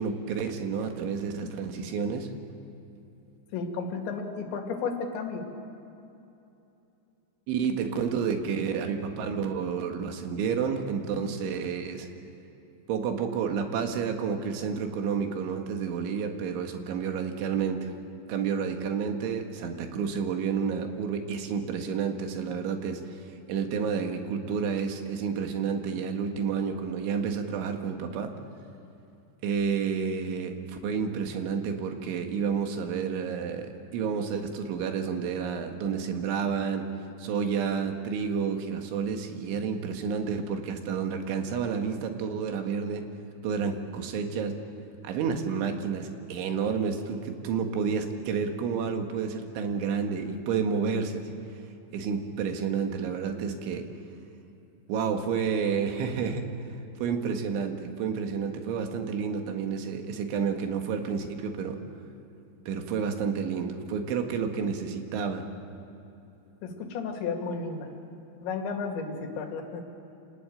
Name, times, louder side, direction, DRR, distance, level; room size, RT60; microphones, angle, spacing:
voice 1, 0.0-2.3 7.5-12.1 12.9-17.9 18.3-23.1 23.5-28.3 29.4-36.9 37.2-43.0 43.4-44.6 45.0-51.3 51.9-53.9 54.9-61.8 62.7-65.5, right 6 dB, 85° right, 5 dB, 4.2 m, -30 dB
voice 2, 3.5-5.4 66.6-67.9 68.4-69.8, left 4 dB, 75° left, 3 dB, 4.5 m, -33 dB
27.0 x 19.0 x 9.0 m, 2.9 s
omnidirectional pair, 5.3 m